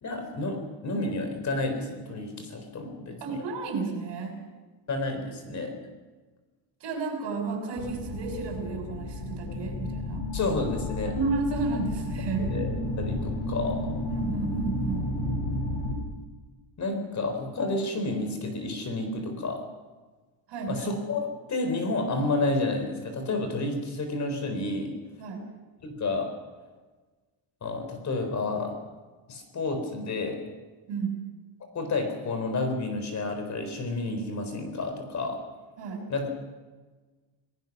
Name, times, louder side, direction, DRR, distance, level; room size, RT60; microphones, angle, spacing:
voice 1, 0.0-3.4 4.9-5.8 10.3-11.2 12.4-13.9 16.8-19.7 20.7-24.9 25.8-26.3 27.6-28.8 29.3-30.4 31.7-35.4 36.1-36.4, left 2 dB, 40° left, 6 dB, 4.1 m, -30 dB
voice 2, 3.2-4.4 6.8-10.3 11.1-12.5 14.1-15.1 20.5-20.9 25.2-25.5 30.9-31.2 35.8-36.0, right 4 dB, 65° right, 3 dB, 6.4 m, -32 dB
sound 1, 7.8-15.9, left 1 dB, 65° left, 6.8 m, -32 dB
28.0 x 18.5 x 6.1 m, 1.3 s
cardioid pair, 165°, 44 cm